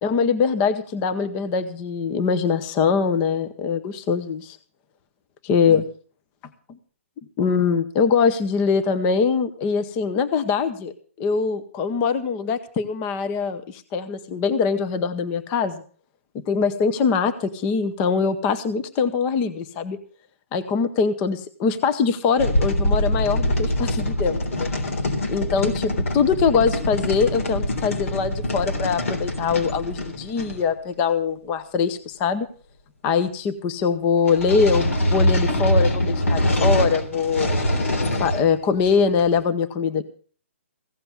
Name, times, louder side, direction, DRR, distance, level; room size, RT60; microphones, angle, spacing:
voice 1, 0.0-4.6 5.4-5.9 7.4-15.8 16.3-20.0 20.5-24.7 25.3-32.5 33.0-37.5 38.2-40.0, left 5 dB, 20° left, 11 dB, 0.8 m, -23 dB
sound 1, 22.4-30.7 34.3-38.5 38.8-39.4, left 1 dB, 85° left, 3.5 m, -23 dB
16.0 x 7.7 x 6.9 m, 0.43 s
hypercardioid pair, 170°, 7 cm